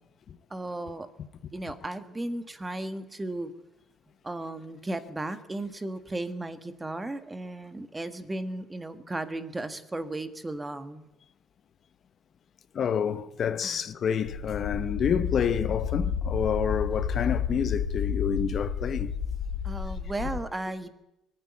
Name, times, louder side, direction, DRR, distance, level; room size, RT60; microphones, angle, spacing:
voice 1, 0.5-1.1 1.5-3.5 4.2-11.0 13.6-13.8 19.6-20.9, right 2 dB, 10° right, 1.3 m, -35 dB
voice 2, 12.7-19.1, left 7 dB, 40° left, 0.8 m, -28 dB
sound 1, 14.3-20.4, left 7 dB, 85° left, 3.7 m, -31 dB
23.0 x 12.5 x 9.8 m
cardioid pair, 155°, 0 cm